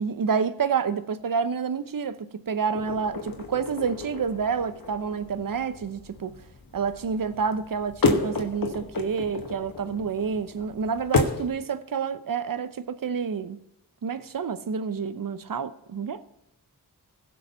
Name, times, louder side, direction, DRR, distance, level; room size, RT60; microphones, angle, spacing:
voice 1, 0.0-6.3 6.7-13.6 14.0-16.2, right 6 dB, 65° right, 0.8 m, -29 dB
sound 1, 2.7-11.5, left 4 dB, 65° left, 1.4 m, -31 dB
16.0 x 6.5 x 5.5 m
cardioid pair, 50°, 36 cm